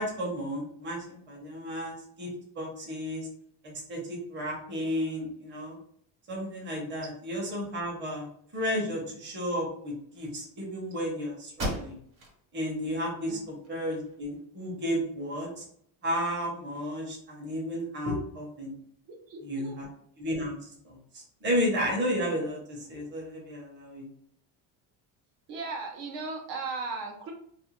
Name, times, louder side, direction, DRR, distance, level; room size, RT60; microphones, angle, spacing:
voice 1, 0.0-2.3 2.6-3.3 3.6-5.7 6.3-8.3 8.5-12.0 12.5-15.6 16.0-18.7 19.4-19.9 20.2-20.6 20.8-24.1, equal, 25° right, -2 dB, 0.9 m, -33 dB
sound 1, 11.5-12.4 12.8-12.9 13.5-14.4, equal, 45° right, 1.1 m, -36 dB
voice 2, 19.1-19.8 25.5-27.3, right 4 dB, 70° right, 2 dB, 0.9 m, -37 dB
2.6 x 2.2 x 3.0 m, 0.65 s
cardioid pair, 150°, 43 cm